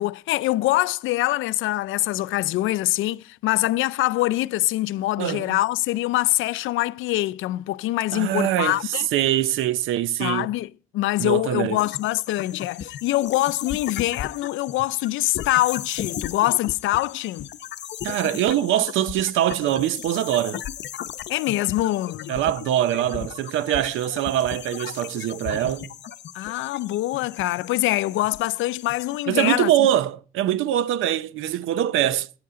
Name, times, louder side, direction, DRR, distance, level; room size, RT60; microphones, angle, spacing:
voice 1, 0.0-9.1 10.2-17.5 21.3-22.4 26.3-29.9, left 16 dB, 85° left, 0.4 m, -24 dB
voice 2, 5.2-5.6 8.1-10.5 11.2-11.8 18.0-20.6 22.3-25.9 29.3-32.3, right 12 dB, 90° right, 0.6 m, -23 dB
sound 1, 11.8-29.3, left 10 dB, 60° left, 0.8 m, -36 dB
14.5 x 9.6 x 3.7 m
cardioid pair, 90°, 20 cm